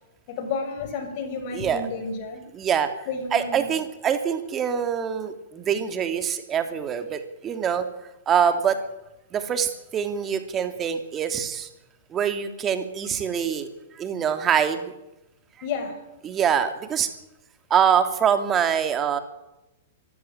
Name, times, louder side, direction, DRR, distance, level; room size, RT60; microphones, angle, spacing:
voice 1, 0.3-2.4 3.1-3.7 15.6-16.0, left 4 dB, 50° left, 6 dB, 6.5 m, -31 dB
voice 2, 1.5-1.9 2.5-2.9 3.3-7.9 8.3-8.8 9.3-11.7 12.1-13.7 14.0-14.9 16.2-17.1 17.7-19.2, right 8 dB, 25° right, 7 dB, 2.9 m, -24 dB
24.5 x 15.0 x 9.0 m, 0.94 s
figure-of-eight pair, 105°, 0 cm